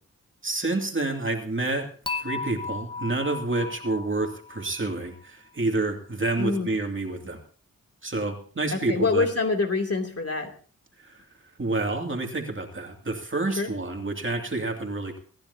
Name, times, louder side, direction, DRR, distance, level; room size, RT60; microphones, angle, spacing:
voice 1, 0.4-1.9 2.2-7.4 8.0-9.3 11.0-11.2 11.6-15.2, right 2 dB, 35° right, 3 dB, 2.5 m, -28 dB
Dishes pots and pans / Chink clink, 2.1-5.2, left 4 dB, 15° left, 1.0 m, -35 dB
voice 2, 6.4-6.7 8.7-10.5 13.6-13.7, left 3 dB, 45° left, 2 dB, 2.8 m, -25 dB
25.5 x 10.5 x 2.8 m, 0.42 s
cardioid pair, 65°, 34 cm